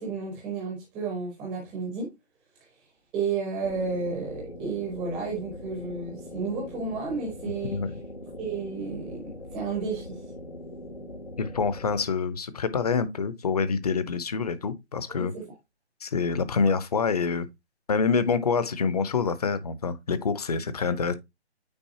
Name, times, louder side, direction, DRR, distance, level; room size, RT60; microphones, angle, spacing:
voice 1, 0.0-2.1 3.1-7.8 8.4-10.2 15.1-15.4 20.8-20.9, right 4 dB, 5° right, 0.6 m, -32 dB
sound 1, 3.6-12.1, left 1 dB, 80° left, 1.8 m, -41 dB
voice 2, 11.4-15.3 16.0-17.5 17.9-21.1, left 5 dB, 35° left, 0.7 m, -26 dB
8.9 x 4.0 x 2.8 m
figure-of-eight pair, 155°, 33 cm